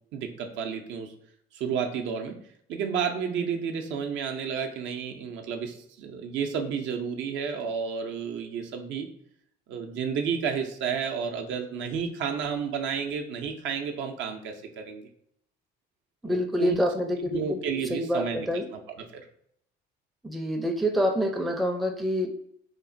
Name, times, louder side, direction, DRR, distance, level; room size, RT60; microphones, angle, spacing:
voice 1, 0.1-1.1 1.5-2.4 2.7-9.1 9.7-15.1 16.2-16.8 17.2-18.8 19.1-19.2, right 6 dB, 65° right, 3 dB, 0.5 m, -31 dB
voice 2, 16.2-17.6 17.9-18.7 20.2-22.3, equal, ahead, 3 dB, 0.4 m, -27 dB
3.1 x 2.1 x 2.5 m, 0.69 s
supercardioid pair, 80°, 20 cm